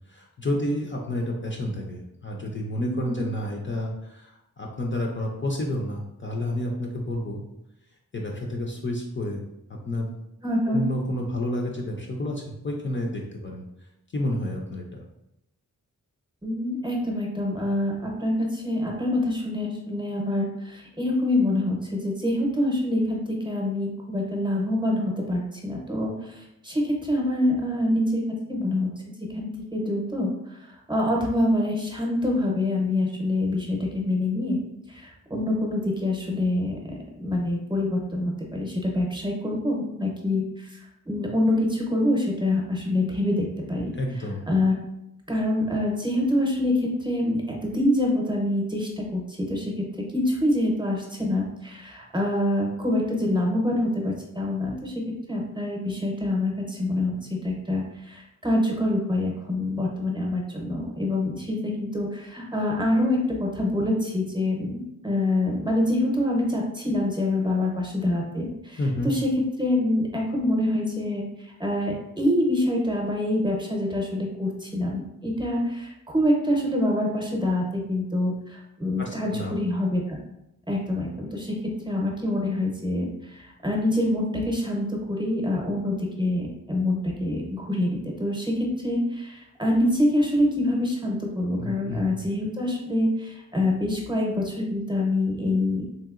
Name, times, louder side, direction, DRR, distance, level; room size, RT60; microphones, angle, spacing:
voice 1, 0.1-7.4 8.1-9.4 9.9-10.1 10.7-13.6 14.1-15.0 43.9-44.4 68.8-69.1 79.0-79.5 91.6-92.2, left 1 dB, 40° left, -1 dB, 0.5 m, -30 dB
voice 2, 2.8-3.2 10.4-10.8 16.4-28.2 28.5-28.9 29.2-34.6 34.9-36.9 37.2-40.8 41.1-43.9 44.5-44.8 45.3-80.2 80.7-95.9, left 1 dB, 15° right, -1 dB, 0.7 m, -26 dB
3.2 x 2.8 x 2.4 m, 0.84 s
wide cardioid pair, 80°, 32 cm